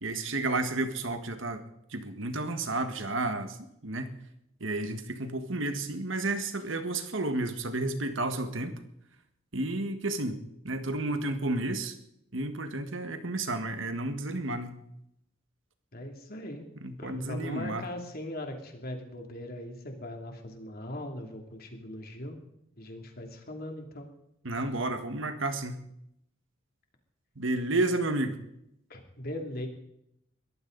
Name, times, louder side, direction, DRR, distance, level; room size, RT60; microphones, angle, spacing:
voice 1, 0.0-1.6 1.9-3.6 3.8-4.1 4.6-8.8 9.5-11.9 12.3-14.8 16.8-17.9 24.4-25.9 27.3-28.4, right 2 dB, 70° right, 8 dB, 1.6 m, -31 dB
voice 2, 15.9-16.7 17.0-22.4 22.8-24.1 28.9-29.7, left 1 dB, 50° left, 3 dB, 2.9 m, -39 dB
22.0 x 14.5 x 4.0 m, 0.77 s
head